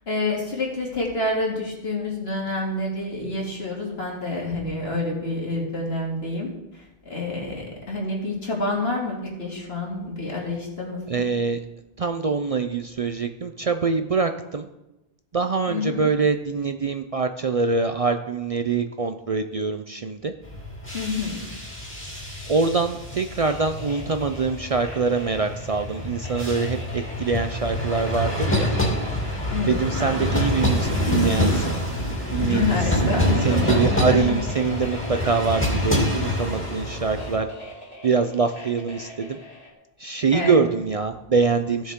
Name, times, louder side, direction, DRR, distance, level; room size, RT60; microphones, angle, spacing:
voice 1, 0.0-11.2 15.7-16.1 20.9-21.4 29.5-29.8 32.4-34.3 40.3-40.6, left 2 dB, 75° left, -2 dB, 2.7 m, -28 dB
voice 2, 11.1-11.6 12.0-14.7 15.3-20.3 22.5-28.7 29.7-31.8 32.3-32.7 33.4-37.5 38.0-39.4 40.0-41.9, right 4 dB, 45° right, 7 dB, 0.5 m, -24 dB
sound 1, 20.4-37.4, left 1 dB, 10° left, 2.6 m, -26 dB
sound 2, 23.1-39.7, left 1 dB, 35° left, 2.3 m, -42 dB
15.5 x 7.3 x 3.7 m, 0.95 s
omnidirectional pair, 1.0 m